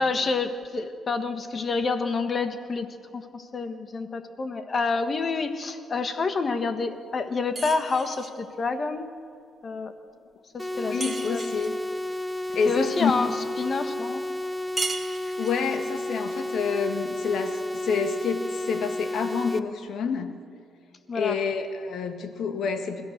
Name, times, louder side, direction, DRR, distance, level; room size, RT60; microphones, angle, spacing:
voice 1, 0.0-9.2 9.6-9.9 10.5-11.4 12.7-13.3 13.6-14.2 21.1-21.4, left 4 dB, 40° left, 8 dB, 1.5 m, -28 dB
sound 1, 7.6-8.4 11.0-11.8 14.8-15.7, right 3 dB, 25° right, 1.8 m, -34 dB
sound 2, 10.6-19.6, left 1 dB, ahead, 1.2 m, -32 dB
voice 2, 10.8-11.8 12.5-13.1 15.4-20.3 21.1-23.0, left 5 dB, 70° left, 7 dB, 1.9 m, -28 dB
28.0 x 15.0 x 6.7 m, 2.4 s
cardioid pair, 90°, 0 cm